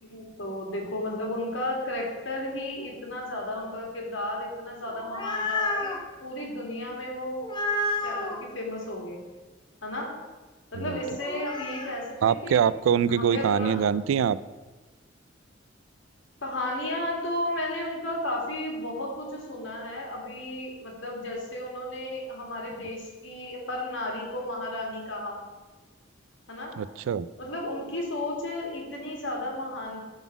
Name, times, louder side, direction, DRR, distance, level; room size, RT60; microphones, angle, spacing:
voice 1, 0.0-7.5 8.0-9.2 9.8-10.1 10.7-12.5 13.1-13.8 16.4-25.4 26.5-26.8 27.4-30.1, left 1 dB, 70° left, 0 dB, 2.1 m, -33 dB
sound 1, 4.9-6.0 7.4-8.4 11.2-11.9, left 2 dB, 25° left, 1.0 m, -30 dB
voice 2, 12.2-14.4 26.8-27.3, right 7 dB, 85° right, 18 dB, 0.3 m, -24 dB
10.5 x 4.0 x 6.0 m, 1.2 s
head